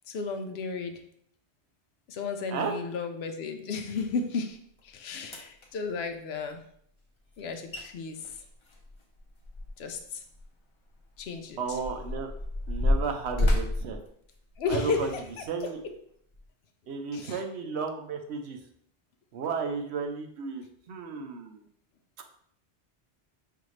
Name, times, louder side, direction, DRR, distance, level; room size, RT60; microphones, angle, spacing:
voice 1, 0.1-1.0 2.1-4.6 4.8-6.6 7.4-8.2 9.8-10.2 11.2-11.8 14.6-15.2 17.1-17.4, left 4 dB, 70° left, 6 dB, 0.8 m, -33 dB
sound 1, 4.8-4.9 5.2-5.7 7.4-7.5 7.7-7.8 8.2-10.0 10.3-10.4 11.2-14.9 15.5-15.7 16.3-16.4, left 1 dB, 30° left, 0.7 m, -29 dB
voice 2, 11.6-12.3 12.7-14.0 14.7-15.1 15.5-15.8 16.9-18.6 19.3-21.6, right 5 dB, 80° right, 4 dB, 0.9 m, -33 dB
5.6 x 2.6 x 3.1 m, 0.68 s
omnidirectional pair, 1.1 m